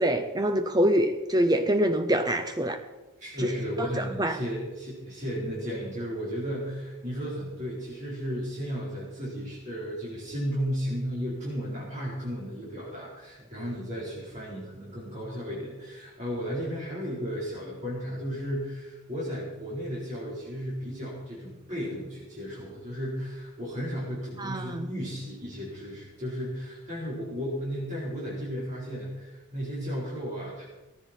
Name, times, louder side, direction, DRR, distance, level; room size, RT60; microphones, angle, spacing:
voice 1, 0.0-2.8 3.4-3.9 4.2-4.4 24.4-24.9, equal, 20° right, 8 dB, 0.7 m, -25 dB
voice 2, 3.2-30.7, equal, 35° right, -6 dB, 4.4 m, -34 dB
17.5 x 14.0 x 4.5 m, 1.1 s
head